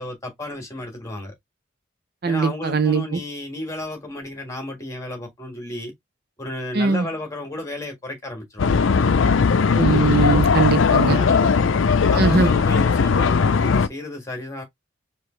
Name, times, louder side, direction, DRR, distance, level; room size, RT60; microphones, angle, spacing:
voice 1, 0.0-1.3 2.2-5.9 6.4-8.8 11.1-11.6 12.1-14.6, left 1 dB, 15° left, 1.6 m, -33 dB
voice 2, 2.2-3.2 6.7-7.1 9.7-11.2 12.2-12.5, right 4 dB, 50° right, 0.5 m, -20 dB
sound 1, 8.6-13.9, left 5 dB, 75° left, 0.5 m, -18 dB
4.8 x 3.0 x 3.2 m
head